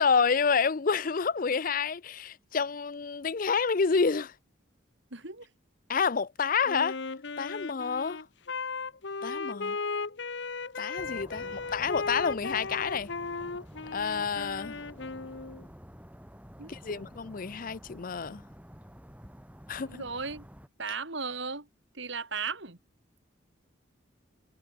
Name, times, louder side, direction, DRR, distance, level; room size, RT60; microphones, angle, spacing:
voice 1, 0.0-4.3 5.9-7.0 7.4-8.2 9.2-9.8 10.8-13.1 13.9-14.8 16.7-18.4 19.7-20.0, left 5 dB, 40° left, 0.5 m, -28 dB
voice 2, 5.1-5.5 11.4-11.6 16.6-17.0 19.8-20.5 20.8-21.7 21.9-22.8, right 5 dB, 65° right, 3.5 m, -37 dB
Wind instrument woodwind instrument, 6.7-15.6, left 4 dB, 60° left, 0.9 m, -36 dB
sound 1, 11.0-20.7, equal, 5° right, 6.0 m, -50 dB
head